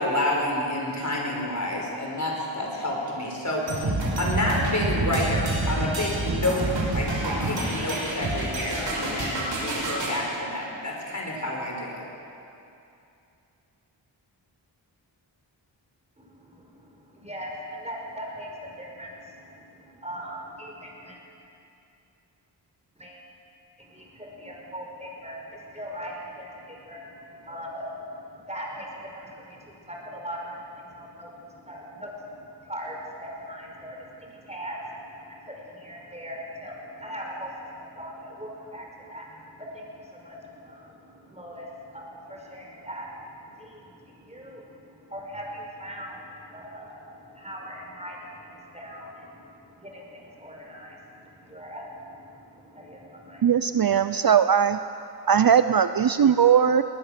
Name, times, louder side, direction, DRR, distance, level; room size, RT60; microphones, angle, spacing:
voice 1, 0.0-12.0, left 1 dB, 40° left, -1 dB, 5.6 m, -29 dB
sound 1, 3.7-10.2, right 2 dB, 65° right, 5.7 m, -28 dB
voice 2, 16.2-21.2 23.0-23.2 23.8-53.5, equal, 15° right, -1 dB, 5.4 m, -40 dB
voice 3, 53.4-54.8 55.3-56.8, right 8 dB, 50° right, 11 dB, 0.6 m, -19 dB
20.0 x 20.0 x 6.8 m, 2.7 s
wide cardioid pair, 75°, 45 cm